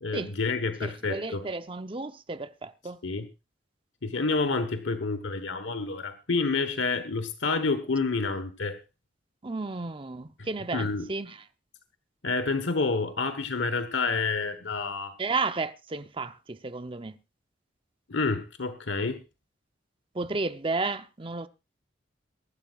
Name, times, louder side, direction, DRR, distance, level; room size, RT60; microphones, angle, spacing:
voice 1, 0.0-1.4 3.0-3.3 4.0-8.8 10.7-11.0 12.2-15.2 18.1-19.2, left 3 dB, 90° left, 1.2 m, -28 dB
voice 2, 0.8-3.0 9.4-11.4 15.2-17.2 20.1-21.5, right 3 dB, 30° right, 0.7 m, -33 dB
23.0 x 12.0 x 2.4 m
head